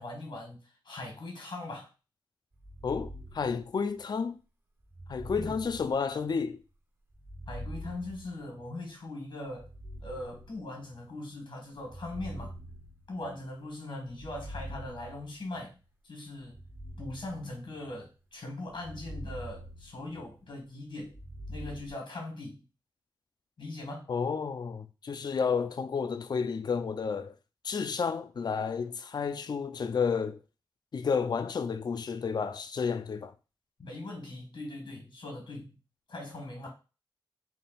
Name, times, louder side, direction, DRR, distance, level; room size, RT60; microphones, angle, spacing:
voice 1, 0.0-1.9 5.4-5.5 7.5-9.7 10.0-12.5 13.1-16.6 17.0-21.2 21.5-22.6 23.6-24.1 33.8-35.8 36.1-36.7, left 2 dB, 85° left, 1.5 m, -40 dB
sound 1, 2.6-4.1 4.9-6.6 7.1-8.9 9.5-11.1 11.8-13.6 14.1-15.7 16.5-18.1 18.7-20.5 21.0-21.9, equal, 25° right, 0.6 m, -45 dB
voice 2, 2.8-4.4 5.1-6.6 24.1-27.3 27.6-30.4 30.9-33.3, left 5 dB, 60° left, 0.4 m, -31 dB
3.5 x 2.3 x 4.0 m
cardioid pair, 55°, 8 cm